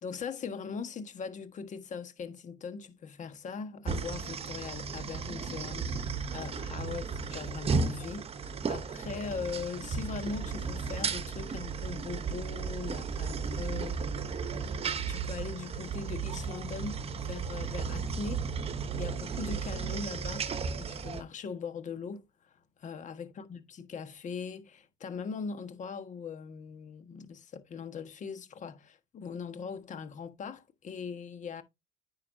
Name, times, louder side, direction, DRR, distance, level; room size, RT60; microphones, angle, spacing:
voice 1, 0.0-14.2 15.0-18.5 18.9-20.4 20.7-22.5 22.8-31.6, left 5 dB, 45° left, 1.4 m, -40 dB
sound 1, 3.9-21.2, right 5 dB, 35° right, 1.0 m, -34 dB
9.4 x 5.9 x 2.7 m
cardioid pair, 110°, 17 cm